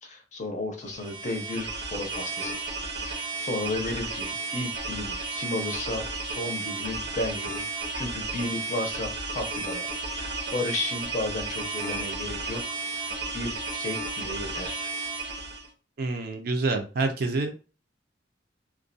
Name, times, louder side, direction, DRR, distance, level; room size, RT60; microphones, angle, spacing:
voice 1, 0.0-2.6 3.0-7.6 7.9-15.0, left 2 dB, 40° left, 4 dB, 0.6 m, -34 dB
sound 1, 0.9-15.7, right 3 dB, 85° right, 0.8 m, -33 dB
voice 2, 16.0-17.5, right 3 dB, 60° right, 6 dB, 0.5 m, -27 dB
2.3 x 2.2 x 2.6 m, 0.34 s
head